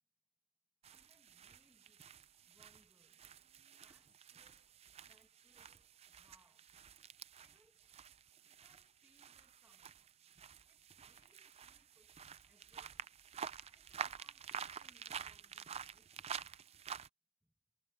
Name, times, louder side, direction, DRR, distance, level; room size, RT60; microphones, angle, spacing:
sound 1, 0.8-17.1, right 7 dB, 30° right, 0.4 m, -50 dB
voice 1, 0.9-2.1 2.4-3.4 3.8-6.7 7.3-8.1 8.4-10.1 10.3-13.1 13.7-16.5 17.4-17.5, right 1 dB, 10° right, 1.6 m, -74 dB
head